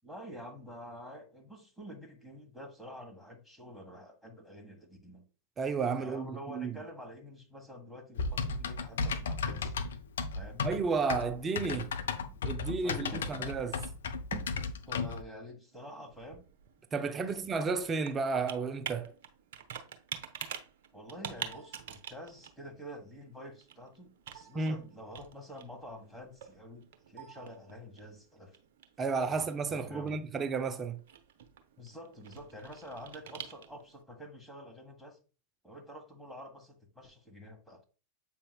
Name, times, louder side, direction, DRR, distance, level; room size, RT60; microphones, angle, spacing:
voice 1, 0.0-5.2 6.0-9.7 10.3-10.7 12.8-13.3 14.8-16.4 17.2-17.5 20.9-28.6 29.3-29.4 29.7-30.2 31.8-35.2 35.6-37.8, equal, ahead, 1.6 m, -48 dB
voice 2, 5.6-6.8 10.6-11.9 12.4-13.8 14.3-14.4 16.9-19.1 24.5-24.8 29.0-31.0, right 4 dB, 20° right, 0.5 m, -32 dB
Typing, 8.2-15.2, left 4 dB, 65° left, 0.6 m, -34 dB
Computer keyboard, 15.7-34.0, right 8 dB, 55° right, 0.7 m, -47 dB
7.7 x 5.5 x 2.3 m
figure-of-eight pair, 90°, 0 cm